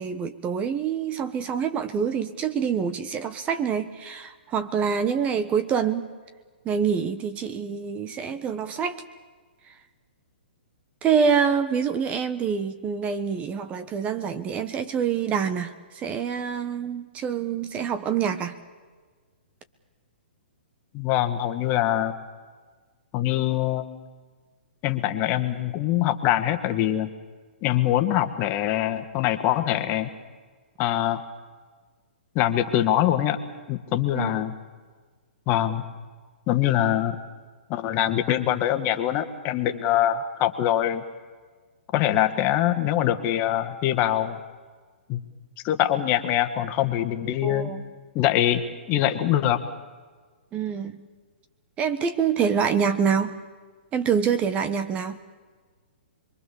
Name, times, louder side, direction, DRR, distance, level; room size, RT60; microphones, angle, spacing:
voice 1, 0.0-6.1 6.6-9.0 11.0-15.7 16.0-18.6 34.1-34.3 47.4-47.8 50.5-51.0 51.8-53.4 53.9-55.2, right 7 dB, 20° right, 11 dB, 1.2 m, -26 dB
voice 2, 20.9-22.1 23.1-23.9 24.8-27.1 27.6-30.1 30.8-31.2 32.4-33.4 33.7-34.5 35.5-35.8 36.5-37.2 37.7-41.0 41.9-44.4 45.1-45.2 45.6-47.7 48.2-48.6 48.9-49.6, left 12 dB, 30° left, 8 dB, 1.8 m, -23 dB
27.5 x 23.0 x 7.2 m, 1.4 s
hypercardioid pair, 135°, 6 cm